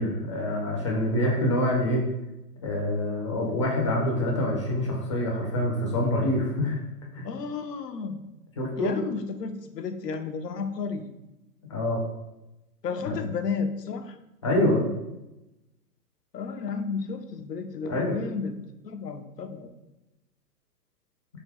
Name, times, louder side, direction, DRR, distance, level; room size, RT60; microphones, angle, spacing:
voice 1, 0.0-2.0 2.6-6.8 7.1-7.3 8.6-9.0 11.7-12.0 13.1-13.2 14.4-14.8 17.9-18.1, left 1 dB, 20° left, -1 dB, 0.4 m, -26 dB
voice 2, 7.2-8.2 8.8-11.1 12.8-14.2 16.3-18.6 18.8-19.7, left 5 dB, 90° left, 7 dB, 0.6 m, -32 dB
3.5 x 2.6 x 3.4 m, 0.96 s
figure-of-eight pair, 120°, 47 cm